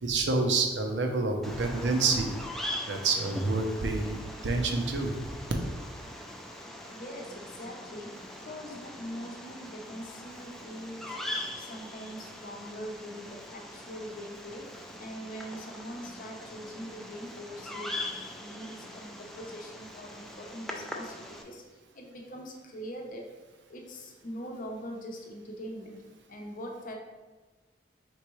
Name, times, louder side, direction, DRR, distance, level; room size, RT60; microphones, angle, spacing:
voice 1, 0.0-2.3 2.9-4.2 4.4-5.1, right 3 dB, 75° right, 4 dB, 0.6 m, -28 dB
Bird vocalization bird call bird song, 1.4-21.4, left 1 dB, ahead, 0.3 m, -42 dB
voice 2, 6.9-8.2 8.4-11.2 11.6-14.7 15.0-17.9 18.4-23.3 23.7-26.0 26.3-27.0, equal, 50° left, 1 dB, 0.7 m, -42 dB
4.5 x 3.5 x 3.0 m, 1.3 s
head